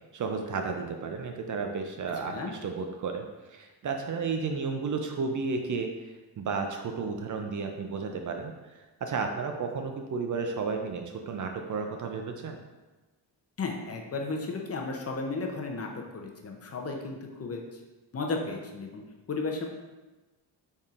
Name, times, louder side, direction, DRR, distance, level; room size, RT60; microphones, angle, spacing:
voice 1, 0.1-12.6, right 4 dB, 45° right, 4 dB, 0.4 m, -33 dB
voice 2, 13.6-17.8 18.1-19.0 19.3-19.7, left 3 dB, 35° left, 1 dB, 0.6 m, -34 dB
4.1 x 3.6 x 2.4 m, 1.2 s
cardioid pair, 80°, 43 cm